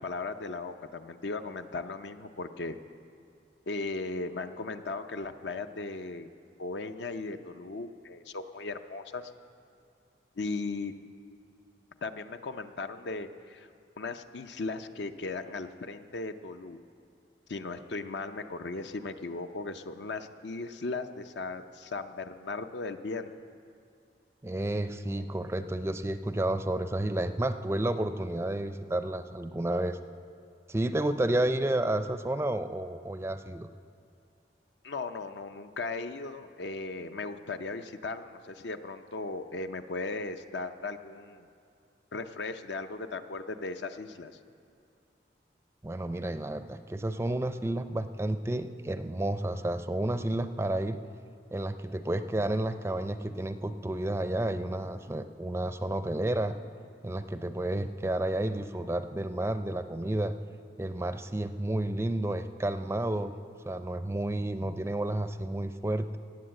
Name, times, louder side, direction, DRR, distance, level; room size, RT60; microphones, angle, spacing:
voice 1, 0.0-2.8 3.7-6.3 6.6-9.3 10.4-10.9 12.0-13.7 14.0-16.8 17.5-23.3 34.8-41.5 42.1-44.3, left 3 dB, 80° left, 9 dB, 0.6 m, -37 dB
voice 2, 24.4-30.0 30.7-33.7 45.8-51.1 51.5-56.5 57.0-60.3 60.8-63.3 63.7-66.2, right 1 dB, 15° right, 10 dB, 0.4 m, -31 dB
18.0 x 7.9 x 7.6 m, 2.4 s
head